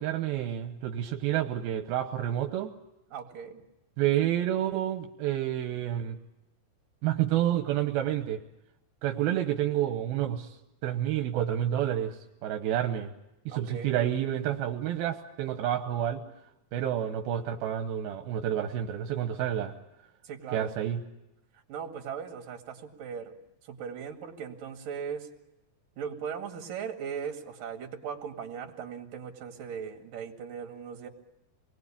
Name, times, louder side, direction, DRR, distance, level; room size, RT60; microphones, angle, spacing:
voice 1, 0.0-2.7 4.0-6.2 7.0-8.4 9.0-10.5 10.8-13.1 13.5-16.2 16.7-19.7 20.5-21.0, right 11 dB, 85° right, 5 dB, 3.0 m, -29 dB
voice 2, 3.1-3.6 9.1-9.2 13.5-13.9 20.2-20.7 21.7-23.3 23.7-25.3 26.0-31.1, right 7 dB, 65° right, 4 dB, 3.7 m, -38 dB
26.5 x 20.5 x 8.6 m, 0.92 s
omnidirectional pair, 4.3 m